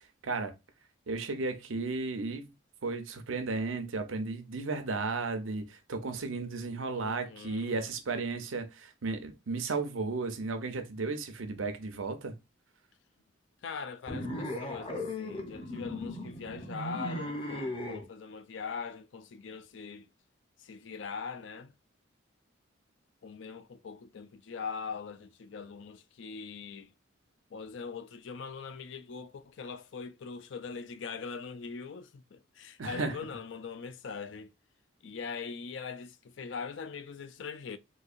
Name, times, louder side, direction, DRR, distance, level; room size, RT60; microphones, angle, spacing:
voice 1, 0.2-0.5 1.1-2.5 2.8-12.4 32.8-33.2, right 3 dB, 90° right, 0.7 m, -34 dB
voice 2, 6.9-7.8 13.6-20.1 20.6-21.7 23.2-26.9 27.5-34.5 35.0-37.8, left 5 dB, 65° left, 0.4 m, -42 dB
sound 1, 14.1-18.0, left 1 dB, 25° left, 0.7 m, -37 dB
4.0 x 2.7 x 2.5 m
head